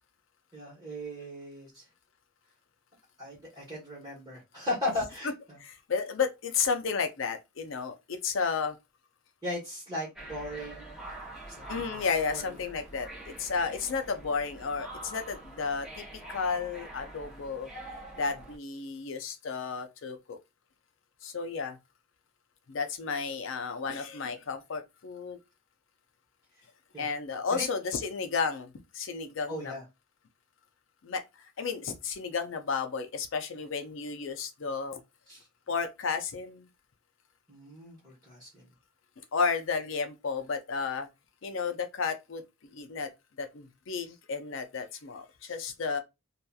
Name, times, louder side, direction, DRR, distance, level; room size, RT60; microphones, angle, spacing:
voice 1, 0.5-1.8 3.2-5.6 9.4-11.0 11.7-12.0 12.3-12.5 18.3-18.4 26.9-27.1 27.5-27.7 29.5-29.8 35.3-35.4 37.5-38.7, left 1 dB, 20° right, 1.1 m, -37 dB
voice 2, 5.6-8.8 11.7-17.7 18.2-20.4 21.2-21.8 22.7-25.4 27.0-29.7 31.0-31.2 31.6-35.0 35.7-36.7 39.3-41.1 41.4-43.1 43.4-46.0, left 5 dB, 65° left, 0.5 m, -32 dB
sound 1, 10.2-18.6, right 2 dB, 5° right, 0.7 m, -45 dB
2.8 x 2.3 x 2.3 m
head